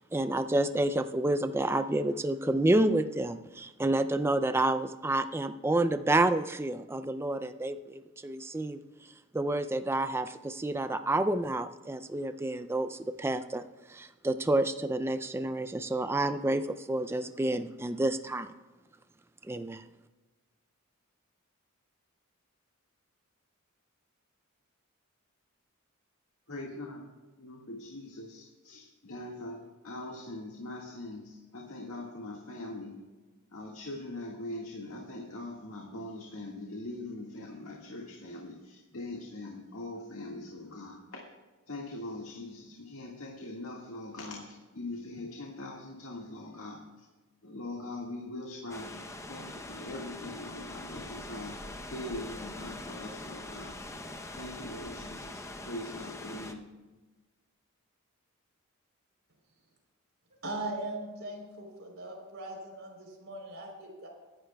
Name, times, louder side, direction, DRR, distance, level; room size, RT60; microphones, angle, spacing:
voice 1, 0.1-8.8 9.3-18.5 19.4-19.8, right 1 dB, 10° right, 11 dB, 0.3 m, -29 dB
voice 2, 26.5-27.1 27.4-33.0 33.5-41.2 41.7-47.1 47.4-53.8 54.3-56.7, left 2 dB, 75° left, -1 dB, 1.8 m, -42 dB
sound 1, 48.7-56.5, left 1 dB, 15° left, 0.7 m, -43 dB
voice 3, 60.4-64.1, right 2 dB, 65° right, 0 dB, 3.7 m, -39 dB
23.0 x 11.5 x 2.3 m, 1.2 s
head